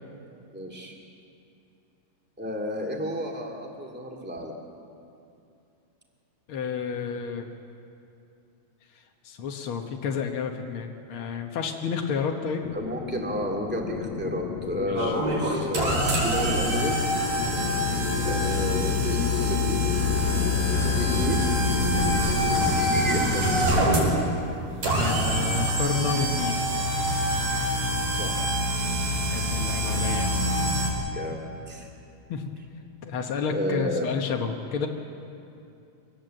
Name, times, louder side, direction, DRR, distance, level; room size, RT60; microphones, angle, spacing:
voice 1, 0.5-1.0 2.4-4.5 12.7-17.0 18.2-19.8 20.8-21.5 22.0-22.1 22.5-23.8 28.1-28.5 29.8-30.4 31.1-31.9 33.5-34.1, equal, 5° right, 0 dB, 1.8 m, -32 dB
voice 2, 6.5-7.5 9.2-12.6 14.9-15.2 24.8-26.7 29.3-30.3 32.3-32.5 33.0-34.9, left 6 dB, 65° left, 2 dB, 1.4 m, -30 dB
sound 1, 12.6-23.9, left 10 dB, 80° left, 1.6 m, -32 dB
sound 2, 14.9-30.9, equal, 55° right, 5.5 m, -25 dB
24.0 x 18.5 x 7.7 m, 2.6 s
omnidirectional pair, 3.9 m